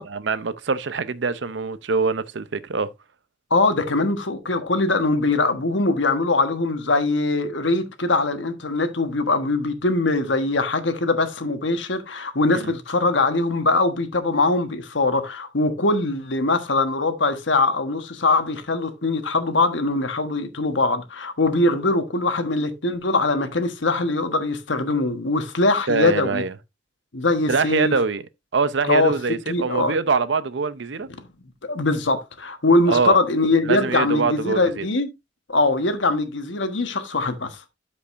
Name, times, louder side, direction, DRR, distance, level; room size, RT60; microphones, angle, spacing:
voice 1, 0.0-2.9 12.5-12.7 25.9-26.5 27.5-28.2 28.5-31.1 32.9-33.2 33.7-34.9, right 4 dB, 70° right, 0.7 m, -24 dB
voice 2, 3.5-26.4 27.1-27.9 28.9-29.1 29.5-29.9 31.6-35.1 35.5-37.6, left 2 dB, 80° left, 1.4 m, -22 dB
13.0 x 5.3 x 2.6 m
head